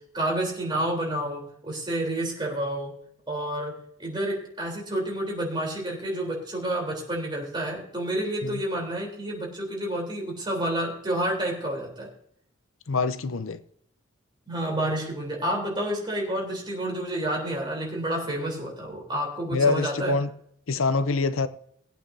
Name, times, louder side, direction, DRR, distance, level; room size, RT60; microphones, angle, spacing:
voice 1, 0.1-2.9 3.3-12.1 14.5-20.2, right 1 dB, 25° right, 3.7 m, -29 dB
voice 2, 12.9-13.6 19.5-20.3 20.7-21.5, left 4 dB, 85° left, 0.7 m, -25 dB
21.0 x 8.7 x 2.8 m
head